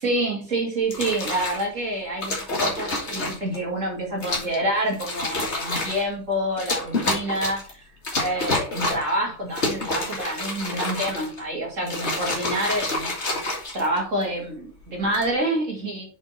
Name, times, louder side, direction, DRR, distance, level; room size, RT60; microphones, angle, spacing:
voice 1, 0.0-7.8 8.2-13.4 13.7-16.0, right 1 dB, 55° right, -2 dB, 2.7 m, -27 dB
sound 1, 0.8-1.6 2.2-3.6 4.2-4.6 4.9-6.0 6.6-7.7 8.0-9.1 9.5-11.4 11.8-14.2 14.9-15.3, left 2 dB, 50° left, 2.4 m, -28 dB
6.2 x 6.1 x 4.3 m, 0.40 s
omnidirectional pair, 1.6 m